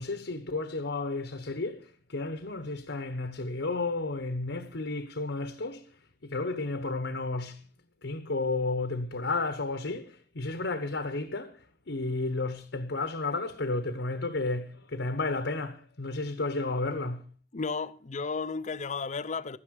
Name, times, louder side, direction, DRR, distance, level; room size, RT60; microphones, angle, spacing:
voice 1, 0.0-5.8 6.2-7.6 8.0-11.6 11.9-17.2, left 3 dB, 80° left, 1.1 m, -32 dB
voice 2, 17.5-19.6, left 4 dB, 40° left, 0.6 m, -33 dB
13.0 x 10.0 x 6.4 m
head